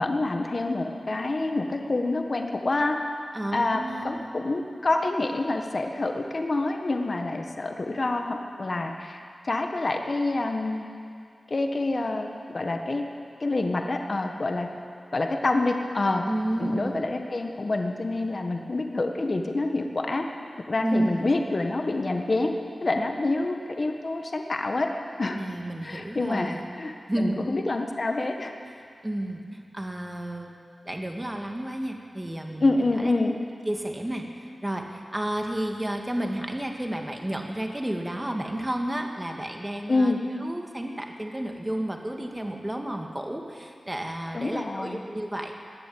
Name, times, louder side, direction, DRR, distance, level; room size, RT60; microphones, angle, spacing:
voice 1, 0.0-3.0 3.5-9.2 9.4-10.8 11.5-13.0 13.4-14.7 15.1-16.3 16.6-20.2 20.7-22.5 22.8-24.9 25.2-25.4 25.8-28.5 32.6-33.4 39.9-40.2 44.3-45.0, left 2 dB, 50° left, 4 dB, 1.4 m, -27 dB
voice 2, 3.3-4.3 16.3-17.1 20.8-21.3 25.4-26.6 27.1-27.6 29.0-30.5 30.8-33.1 33.7-40.1 40.4-45.5, right 1 dB, 20° right, 2 dB, 1.9 m, -31 dB
20.5 x 7.7 x 8.7 m, 2.3 s
cardioid pair, 50°, 0 cm